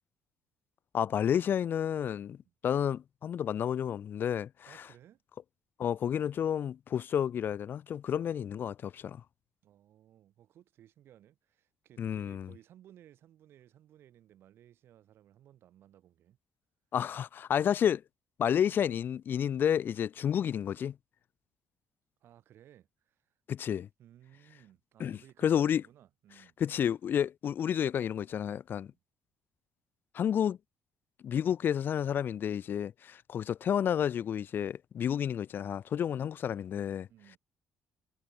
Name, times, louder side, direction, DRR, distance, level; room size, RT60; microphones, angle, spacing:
voice 1, 0.9-2.4 2.6-4.8 5.8-9.2 12.0-12.5 16.9-18.0 18.4-20.9 23.5-23.9 25.0-25.8 26.6-28.9 30.1-30.6 31.2-37.1, left 9 dB, 50° left, 0.5 m, -30 dB
voice 2, 4.7-5.2 9.6-16.4 22.2-23.3 23.8-26.6 28.9-29.0 36.1-36.3 37.1-37.4, right 11 dB, 65° right, 6.1 m, -59 dB
cardioid pair, 85°, 4 cm